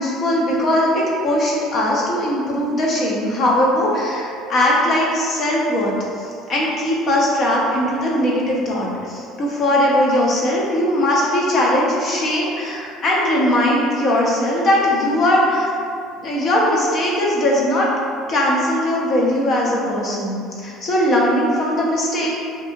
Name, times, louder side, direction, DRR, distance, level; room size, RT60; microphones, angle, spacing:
voice 1, 0.0-15.7 16.2-17.9 18.3-22.3, left 1 dB, 45° left, -4 dB, 0.6 m, -19 dB
2.7 x 2.6 x 2.6 m, 2.3 s
cardioid pair, 125°, 0 cm